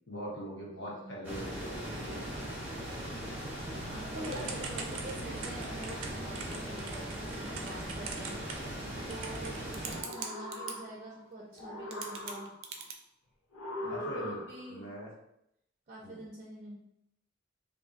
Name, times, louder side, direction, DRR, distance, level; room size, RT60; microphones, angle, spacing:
voice 1, 0.1-2.2 4.1-4.5 13.8-14.4 14.7-15.1 16.0-16.2, equal, 65° left, -4 dB, 1.0 m, -41 dB
voice 2, 0.8-1.5 3.9-8.7 9.1-12.5 13.8-14.9 15.9-16.8, right 2 dB, 35° right, -3 dB, 0.5 m, -46 dB
sound 1, 1.2-10.0, right 1 dB, 10° right, 0.8 m, -39 dB
Typing / Telephone, 4.2-10.7 11.6-11.7 11.9-12.9, right 6 dB, 90° right, 0.5 m, -42 dB
sound 2, 9.8-11.2 11.6-12.8 13.5-14.8, left 1 dB, 85° left, 0.8 m, -41 dB
3.7 x 2.6 x 2.5 m, 0.79 s
head